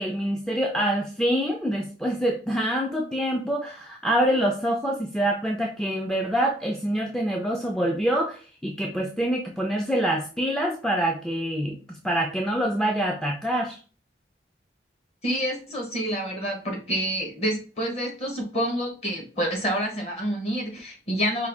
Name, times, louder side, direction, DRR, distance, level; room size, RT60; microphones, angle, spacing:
voice 1, 0.0-13.8, right 1 dB, 5° left, -1 dB, 0.3 m, -26 dB
voice 2, 15.2-21.5, equal, 35° left, 1 dB, 1.1 m, -28 dB
4.6 x 2.3 x 3.4 m, 0.36 s
head